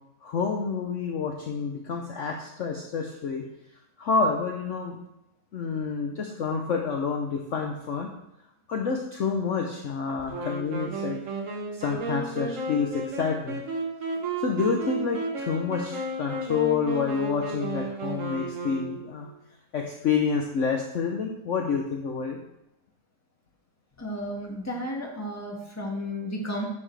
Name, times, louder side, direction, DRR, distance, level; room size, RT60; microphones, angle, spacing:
voice 1, 0.2-3.4 4.0-5.0 5.5-8.1 8.7-11.2 11.8-13.6 14.4-19.3 19.7-22.4, left 5 dB, 55° left, 2 dB, 1.0 m, -28 dB
Wind instrument woodwind instrument, 10.3-19.3, right 2 dB, 50° right, 1.5 m, -33 dB
voice 2, 24.0-26.6, equal, 10° left, -1 dB, 1.5 m, -33 dB
9.9 x 7.0 x 3.3 m, 0.87 s
omnidirectional pair, 1.8 m